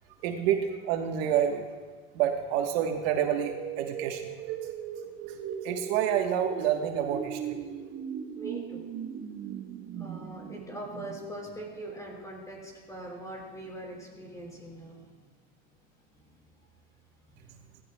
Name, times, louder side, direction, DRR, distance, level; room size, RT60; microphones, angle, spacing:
voice 1, 0.2-1.7 2.1-4.3 5.3-5.4 5.6-7.4, right 9 dB, 75° right, 4 dB, 1.2 m, -28 dB
sound 1, 3.1-12.0, right 8 dB, 40° right, 1.0 m, -39 dB
voice 2, 8.3-8.9 10.0-15.1 16.1-16.5 17.3-17.6, right 1 dB, 10° left, -2 dB, 4.7 m, -42 dB
17.5 x 16.5 x 2.2 m, 1.4 s
supercardioid pair, 125°, 31 cm